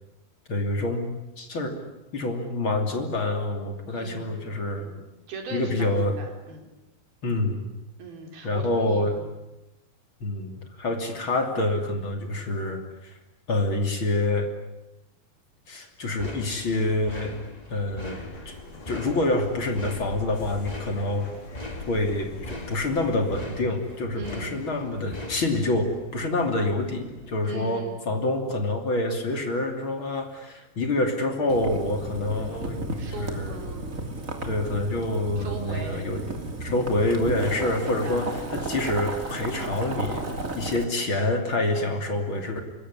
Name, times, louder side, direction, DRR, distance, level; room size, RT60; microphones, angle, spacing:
voice 1, 0.5-1.7 2.1-4.9 5.5-6.2 7.2-7.6 8.4-9.2 10.2-13.1 13.5-14.5 15.7-17.3 17.7-18.5 18.9-21.3 21.9-33.6 34.4-36.2 36.6-40.3 40.5-42.6, left 2 dB, 35° left, 5 dB, 3.4 m, -27 dB
voice 2, 3.9-4.4 4.8-6.7 8.0-9.4 24.2-24.6 27.4-28.0 33.0-34.0 35.4-36.0 37.4-38.3, right 3 dB, 75° right, 3 dB, 6.2 m, -40 dB
sound 1, 16.2-27.5, left 2 dB, 10° left, 2.5 m, -41 dB
sound 2, 18.0-23.4, left 3 dB, 75° left, 6.6 m, -42 dB
Boiling, 31.5-40.8, right 2 dB, 25° right, 2.8 m, -34 dB
25.5 x 22.5 x 9.9 m, 0.96 s
omnidirectional pair, 4.3 m